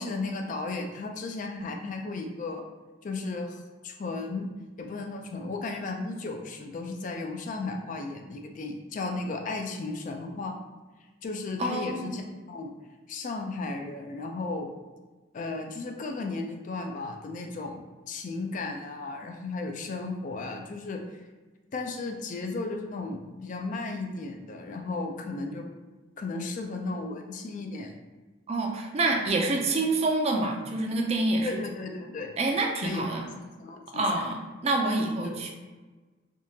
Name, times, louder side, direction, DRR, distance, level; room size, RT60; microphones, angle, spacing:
voice 1, 0.0-2.7 3.0-4.5 4.8-10.5 11.2-12.7 13.1-14.7 15.3-21.0 21.7-25.7 26.2-27.9 31.4-32.3 32.8-33.0 33.6-34.0 35.2-35.4, left 3 dB, 40° left, 3 dB, 0.3 m, -35 dB
voice 2, 11.6-12.1 28.5-31.6 32.4-33.3 33.9-35.5, right 2 dB, 35° right, 2 dB, 0.4 m, -27 dB
3.5 x 2.7 x 2.7 m, 1.3 s
head